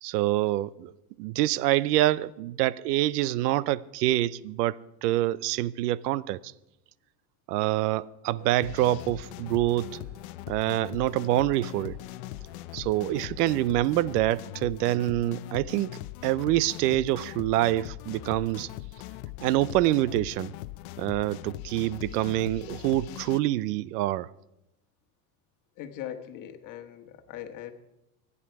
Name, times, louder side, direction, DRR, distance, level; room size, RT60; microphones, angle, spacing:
voice 1, 0.0-0.9 1.2-6.5 7.5-9.9 10.5-12.0 12.7-18.7 19.4-20.5 21.0-24.3, right 15 dB, 80° right, 0.7 m, -26 dB
sound 1, 8.4-13.5, left 2 dB, ahead, 2.2 m, -56 dB
sound 2, 8.6-23.4, left 17 dB, 60° left, 0.7 m, -41 dB
voice 2, 25.8-27.7, left 10 dB, 40° left, 1.7 m, -40 dB
25.0 x 9.8 x 4.7 m
supercardioid pair, 135°, 46 cm